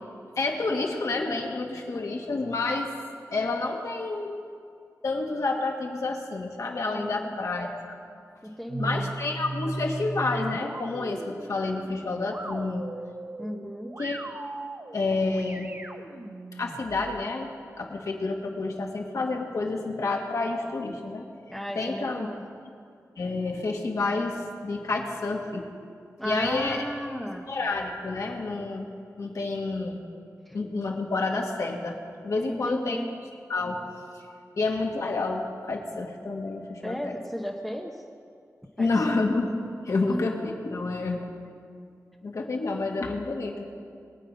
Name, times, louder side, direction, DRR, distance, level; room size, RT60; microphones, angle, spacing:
voice 1, 0.4-2.9 3.3-4.3 5.0-7.7 8.8-12.9 14.0-14.2 14.9-15.7 16.5-17.5 17.8-21.2 21.8-22.3 23.2-25.7 26.2-26.8 27.5-28.9 29.2-30.0 30.5-33.0 33.5-33.8 34.1-34.2 34.6-37.1 38.8-39.5 39.8-41.3 42.2-43.6, left 3 dB, 65° left, 1 dB, 2.0 m, -29 dB
voice 2, 6.9-7.3 8.4-9.1 13.4-13.9 21.5-22.4 26.2-27.5 30.5-30.6 32.5-33.1 36.8-38.0 38.8-39.2 40.1-40.2, equal, 5° left, 0 dB, 1.0 m, -34 dB
sound 1, 8.7-17.3, right 2 dB, 40° right, 1.1 m, -37 dB
23.0 x 8.9 x 5.5 m, 2.4 s
wide cardioid pair, 115°, 6 cm